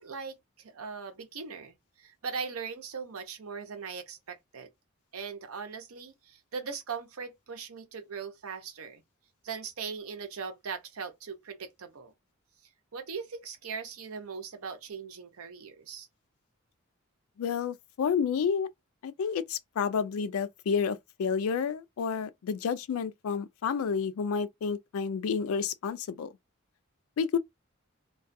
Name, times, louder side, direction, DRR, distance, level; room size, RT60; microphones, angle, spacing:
voice 1, 0.0-4.7 5.1-9.0 9.4-12.1 12.9-16.1, right 5 dB, 85° right, 0.7 m, -40 dB
voice 2, 17.4-18.7 19.0-26.3 27.2-27.4, left 6 dB, 80° left, 0.3 m, -30 dB
2.3 x 2.3 x 2.5 m
head